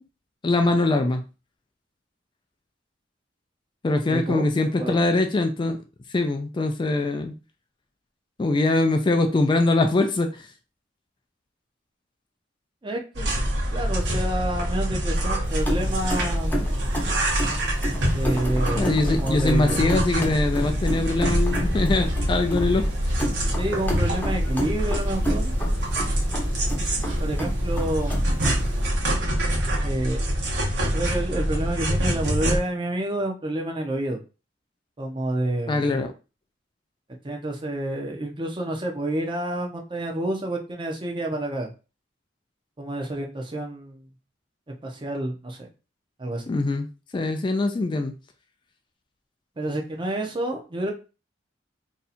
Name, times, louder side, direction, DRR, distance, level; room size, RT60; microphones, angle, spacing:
voice 1, 0.4-1.2 3.8-5.8 6.1-7.3 8.4-10.3 18.8-22.9 35.7-36.1 46.5-46.9 47.1-48.1, left 2 dB, 25° left, 0.3 m, -22 dB
voice 2, 4.1-5.1 12.8-13.3 13.7-16.7 18.1-19.9 23.4-25.5 27.2-28.3 29.8-30.2 30.9-34.2 35.0-36.0 37.2-41.7 42.8-44.1 44.8-45.7 46.2-46.4 49.6-50.9, right 1 dB, 25° right, 0.7 m, -29 dB
sound 1, 13.1-32.6, equal, 65° right, 1.0 m, -25 dB
sound 2, 15.4-28.9, equal, 10° left, 0.7 m, -33 dB
2.7 x 2.3 x 4.0 m
head